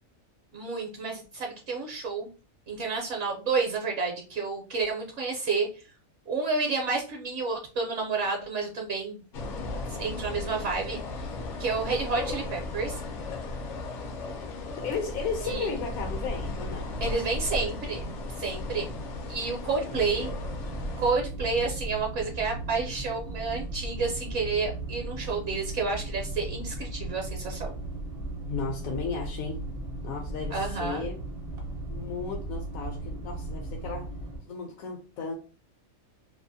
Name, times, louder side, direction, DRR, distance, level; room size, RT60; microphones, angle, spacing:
voice 1, 0.5-2.3 2.7-5.8 6.3-9.2 9.9-11.0 11.6-13.0 15.4-15.7 17.0-18.1 18.4-19.0 19.3-20.3 21.0-27.7 30.5-31.0, right 4 dB, 65° right, 0.9 m, -30 dB
sound 1, 9.3-21.1, left 2 dB, 65° left, 0.8 m, -36 dB
voice 2, 14.8-16.9 19.4-20.3 28.5-29.6 30.0-31.2 31.9-34.1 34.5-35.3, left 5 dB, 85° left, 1.1 m, -35 dB
sound 2, 19.9-34.4, right 2 dB, 40° right, 0.5 m, -36 dB
2.7 x 2.4 x 2.6 m
omnidirectional pair, 1.5 m